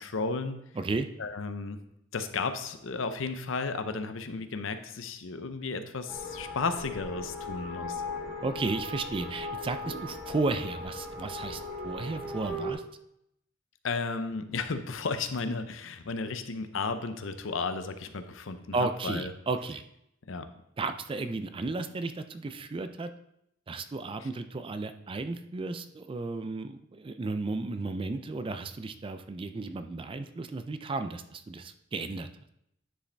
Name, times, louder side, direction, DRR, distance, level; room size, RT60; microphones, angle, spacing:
voice 1, 0.0-0.6 1.2-1.8 2.1-8.0 13.8-19.3 20.3-20.5 24.2-24.3, left 4 dB, 70° left, 9 dB, 0.6 m, -34 dB
voice 2, 0.8-1.1 8.4-12.8 18.7-19.8 20.8-23.1 23.7-32.3, right 3 dB, 25° right, 10 dB, 0.4 m, -34 dB
sound 1, 6.1-12.7, left 2 dB, 10° right, 1.3 m, -38 dB
9.9 x 4.9 x 3.4 m, 0.79 s
head